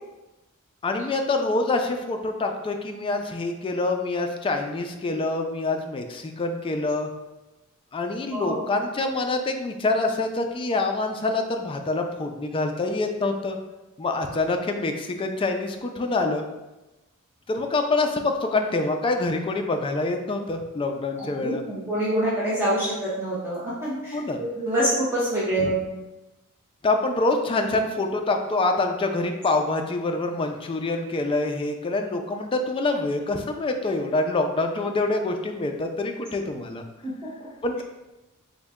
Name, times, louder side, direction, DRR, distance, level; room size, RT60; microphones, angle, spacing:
voice 1, 0.8-7.1 7.9-13.6 14.0-16.4 17.5-21.6 24.1-24.4 25.6-25.7 26.8-36.8 37.6-37.8, left 2 dB, 25° left, 4 dB, 0.3 m, -26 dB
voice 2, 8.3-8.6 21.2-26.0 37.0-37.1, right 1 dB, 10° right, -9 dB, 0.7 m, -26 dB
3.8 x 2.1 x 3.5 m, 1.0 s
head